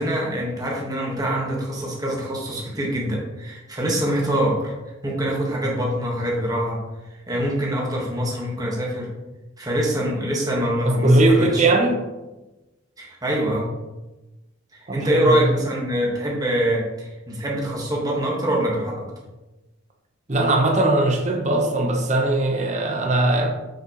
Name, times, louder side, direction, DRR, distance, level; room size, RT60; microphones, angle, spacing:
voice 1, 0.0-4.7 5.0-6.8 7.1-9.1 9.6-11.6 13.0-13.7 14.7-19.1, right 1 dB, 20° right, -3 dB, 1.5 m, -24 dB
voice 2, 10.8-12.0 14.9-15.5 20.3-23.5, right 2 dB, 35° right, 1 dB, 1.0 m, -19 dB
7.3 x 6.6 x 3.1 m, 1.1 s
head